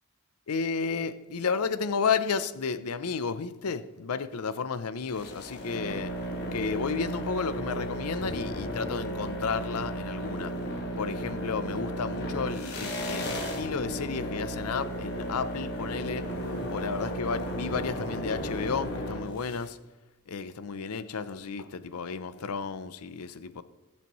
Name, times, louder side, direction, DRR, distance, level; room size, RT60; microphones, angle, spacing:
voice 1, 0.5-6.2 6.5-10.6 11.0-16.3 16.7-19.8 20.3-23.6, left 5 dB, 85° left, 0.6 m, -32 dB
sound 1, 5.1-19.7, equal, 50° left, 2.0 m, -34 dB
20.0 x 7.4 x 3.1 m
head